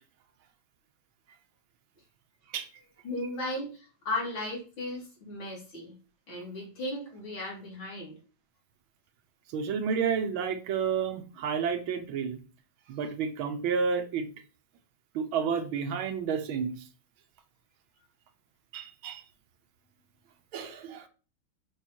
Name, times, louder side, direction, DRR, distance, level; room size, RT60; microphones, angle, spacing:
voice 1, 3.0-5.9 6.3-8.2, left 1 dB, 80° left, 4.2 m, -36 dB
voice 2, 9.5-12.4 12.9-14.3 15.2-16.8 18.7-19.2 20.5-21.1, right 6 dB, 80° right, 1.8 m, -30 dB
7.3 x 5.7 x 4.5 m
omnidirectional pair, 2.2 m